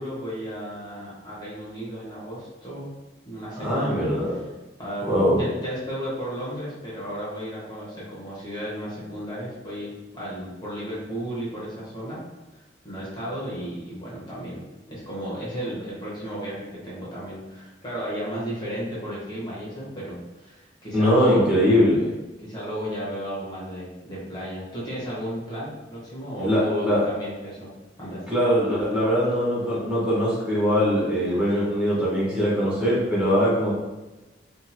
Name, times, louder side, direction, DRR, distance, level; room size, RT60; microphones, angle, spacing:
voice 1, 0.0-2.9 3.3-4.4 4.8-12.2 12.5-21.5 22.4-27.7 28.0-28.2, equal, 25° left, -7 dB, 0.9 m, -34 dB
voice 2, 3.6-4.3 5.0-5.4 20.9-22.1 26.4-27.0 28.3-33.7, equal, 5° right, -9 dB, 0.8 m, -21 dB
2.8 x 2.5 x 2.5 m, 1.1 s
head